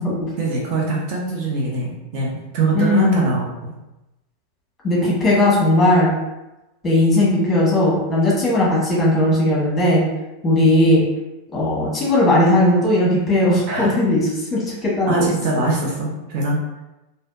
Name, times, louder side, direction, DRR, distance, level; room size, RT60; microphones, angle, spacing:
voice 1, 0.4-3.7 13.7-14.0 15.1-16.6, right 2 dB, 40° right, -3 dB, 0.8 m, -23 dB
voice 2, 2.7-3.3 4.8-6.1 6.8-10.0 10.4-11.0 11.5-15.3, left 1 dB, 20° left, -6 dB, 1.4 m, -17 dB
3.3 x 2.7 x 2.5 m, 0.97 s
figure-of-eight pair, 90°, 0 cm